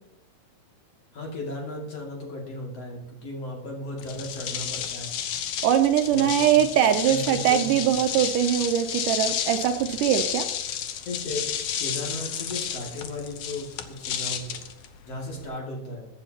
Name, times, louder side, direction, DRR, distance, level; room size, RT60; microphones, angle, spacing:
voice 1, 1.1-5.2 6.1-6.6 7.0-8.0 11.0-14.6 15.1-16.1, left 1 dB, 45° left, -1 dB, 3.3 m, -36 dB
sound 1, 4.0-15.4, left 9 dB, 75° left, 1.5 m, -32 dB
voice 2, 5.6-10.5, right 10 dB, 80° right, 7 dB, 2.1 m, -22 dB
21.5 x 9.8 x 2.9 m, 0.84 s
omnidirectional pair, 4.0 m